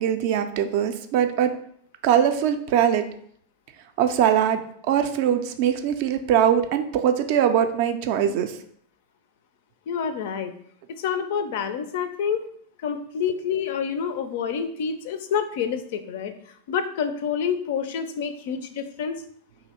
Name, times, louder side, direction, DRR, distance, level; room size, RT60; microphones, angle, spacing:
voice 1, 0.0-1.5 2.0-3.0 4.0-4.6 4.9-8.5, right 9 dB, 45° right, 8 dB, 0.3 m, -21 dB
voice 2, 9.9-10.5 10.9-12.5 12.8-16.3 16.7-19.2, left 7 dB, 50° left, 9 dB, 0.4 m, -28 dB
2.9 x 2.7 x 4.1 m, 0.63 s
figure-of-eight pair, 90°, 0 cm